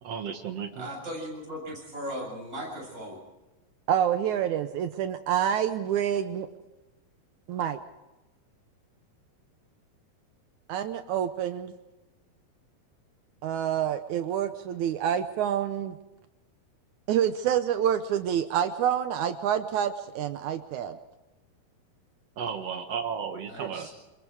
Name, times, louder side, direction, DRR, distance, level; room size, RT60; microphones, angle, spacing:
voice 1, 0.0-0.9 22.4-23.9, right 7 dB, 55° right, 6 dB, 2.1 m, -34 dB
voice 2, 0.8-3.2 23.5-23.9, equal, 20° right, -2 dB, 7.9 m, -37 dB
voice 3, 3.9-6.5 7.5-7.8 10.7-11.7 13.4-16.0 17.1-21.0 23.6-23.7, right 9 dB, 75° right, 9 dB, 1.8 m, -27 dB
25.5 x 22.0 x 4.8 m, 1.0 s
omnidirectional pair, 4.3 m